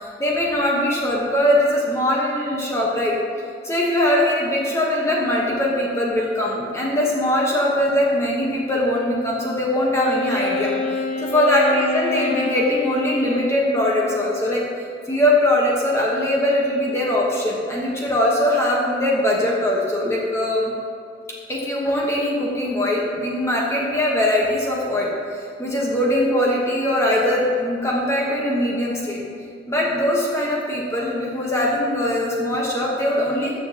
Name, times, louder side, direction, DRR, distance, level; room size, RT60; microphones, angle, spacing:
voice 1, 0.0-3.2 3.6-10.7 11.2-14.6 15.1-20.7 21.5-29.2 29.7-33.6, left 1 dB, 15° left, -4 dB, 1.1 m, -21 dB
Wind instrument woodwind instrument, 9.9-14.5, left 3 dB, 35° left, 0.6 m, -27 dB
14.0 x 6.9 x 2.9 m, 2.3 s
head